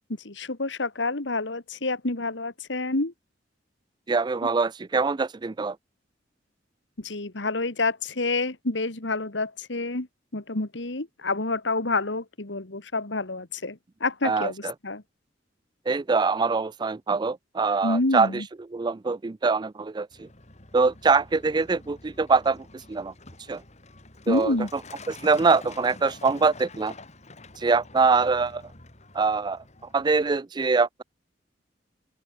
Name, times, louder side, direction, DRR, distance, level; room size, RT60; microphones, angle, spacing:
voice 1, 0.2-3.1 7.0-10.1 10.3-15.0 17.8-18.5 24.3-24.7, left 2 dB, 75° left, 2.1 m, -28 dB
voice 2, 4.1-5.8 14.2-14.7 15.9-18.4 18.7-20.3 20.7-23.1 23.5-23.6 24.3-24.5 25.1-26.9 27.6-28.6 29.1-29.6 29.9-31.0, right 4 dB, 25° right, 0.4 m, -24 dB
Truck, 20.1-30.4, left 2 dB, 40° left, 4.3 m, -47 dB
open air
head